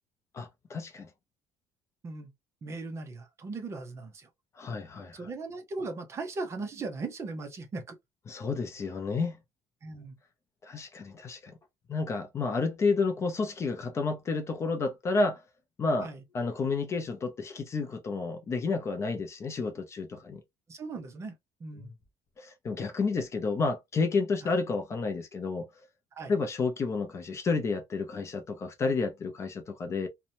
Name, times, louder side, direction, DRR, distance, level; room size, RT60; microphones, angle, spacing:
voice 1, 0.3-1.1 4.6-5.2 8.3-9.4 10.6-11.5 11.9-15.4 15.8-20.4 21.8-21.9 22.4-25.7 26.3-30.1, left 4 dB, 25° left, 0.5 m, -30 dB
voice 2, 2.6-4.3 5.1-8.0 9.8-10.2 16.0-16.2 20.7-21.3 21.6-21.9 24.4-24.5 26.1-26.3, right 3 dB, 25° right, 0.5 m, -38 dB
2.8 x 2.1 x 2.6 m
cardioid pair, 175°, 11 cm